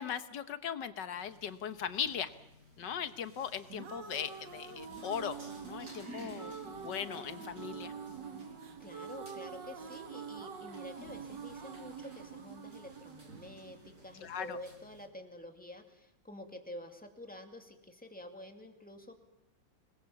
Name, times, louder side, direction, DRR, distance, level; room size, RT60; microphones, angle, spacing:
voice 1, 0.0-2.3 2.8-5.3 5.6-7.9 14.2-14.6, left 8 dB, 70° left, 11 dB, 1.7 m, -39 dB
sound 1, 1.2-15.1, right 1 dB, 50° right, 5.4 m, -55 dB
sound 2, 3.5-14.5, right 6 dB, 70° right, 2.3 m, -46 dB
voice 2, 8.8-19.2, left 1 dB, 5° left, 4 dB, 2.3 m, -49 dB
26.5 x 21.0 x 7.2 m, 0.83 s
omnidirectional pair, 2.1 m